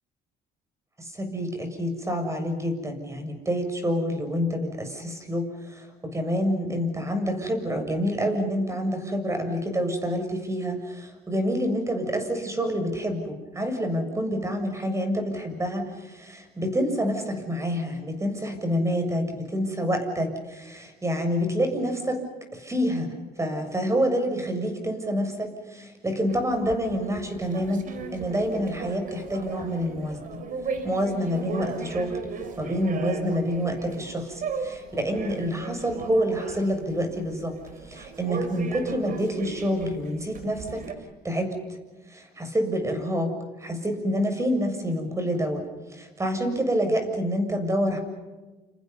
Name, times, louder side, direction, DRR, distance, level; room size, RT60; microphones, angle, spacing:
voice 1, 1.0-22.2 22.5-23.1 23.4-27.9 28.1-30.4 30.8-32.1 32.6-37.6 37.9-40.8 41.2-41.6 42.1-43.3 43.6-45.6 45.9-48.0, equal, 15° right, 6 dB, 7.1 m, -27 dB
sound 1, 26.3-40.9, right 5 dB, 55° right, 4.3 m, -37 dB
29.5 x 29.0 x 5.6 m, 1.2 s
cardioid pair, 110°, 17 cm